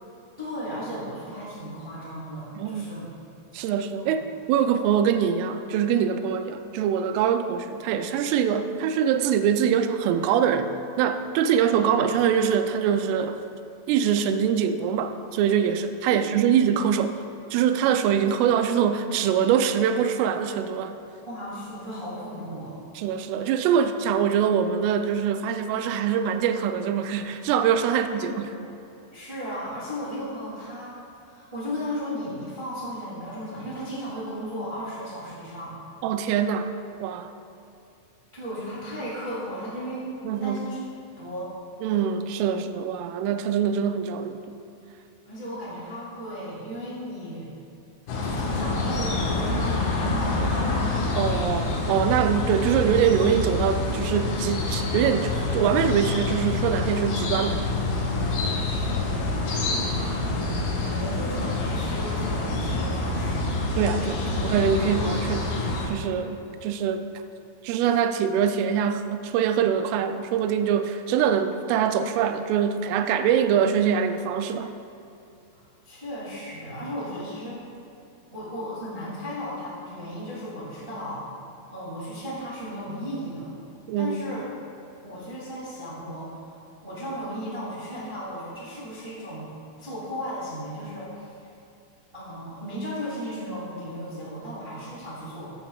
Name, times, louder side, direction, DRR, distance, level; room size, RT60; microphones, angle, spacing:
voice 1, 0.4-3.0 3.9-4.1 11.7-11.8 16.1-16.3 21.2-22.8 28.1-28.7 29.1-30.9 31.2-35.8 38.3-40.1 40.4-40.8 41.2-41.5 45.2-47.5 48.2-50.8 58.3-60.2 60.5-63.5 75.5-77.7 78.3-81.2 81.7-83.5 84.0-84.4 85.0-86.5 86.8-89.5 89.8-91.4 92.1-95.5, equal, 65° right, -9 dB, 0.5 m, -35 dB
voice 2, 2.6-2.9 3.5-4.2 4.5-10.7 11.0-13.4 13.9-17.2 17.5-20.9 23.0-28.6 36.0-36.7 37.0-37.3 40.2-40.6 41.8-44.4 51.2-57.6 63.8-65.6 65.9-67.0 67.6-74.8 83.9-84.4, right 8 dB, 85° right, 8 dB, 3.1 m, -24 dB
sound 1, 48.1-65.9, left 2 dB, 65° left, 2.4 m, -27 dB
15.0 x 10.0 x 2.3 m, 2.6 s
omnidirectional pair, 5.6 m